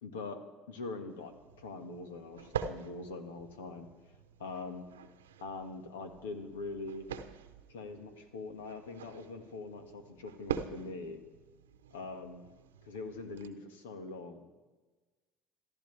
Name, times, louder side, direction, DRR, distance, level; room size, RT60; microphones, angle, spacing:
voice 1, 0.0-0.4 0.7-3.9 4.4-4.8 5.4-7.1 7.7-11.2 11.9-12.4 12.8-14.6, left 3 dB, 80° left, 7 dB, 1.8 m, -43 dB
sound 1, 1.1-13.5, right 8 dB, 85° right, 0.9 m, -45 dB
27.0 x 13.5 x 3.4 m, 1.2 s
hypercardioid pair, 70°, 0 cm